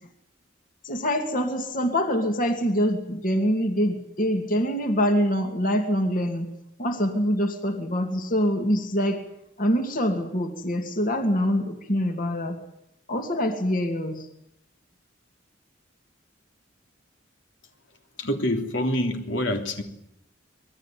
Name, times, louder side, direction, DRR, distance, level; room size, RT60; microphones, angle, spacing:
voice 1, 0.8-6.5 6.8-9.2 9.6-12.6 13.1-14.3, equal, 45° left, 5 dB, 2.5 m, -25 dB
voice 2, 18.2-19.8, left 1 dB, 80° left, 4 dB, 3.3 m, -26 dB
26.0 x 20.5 x 9.3 m, 0.80 s
head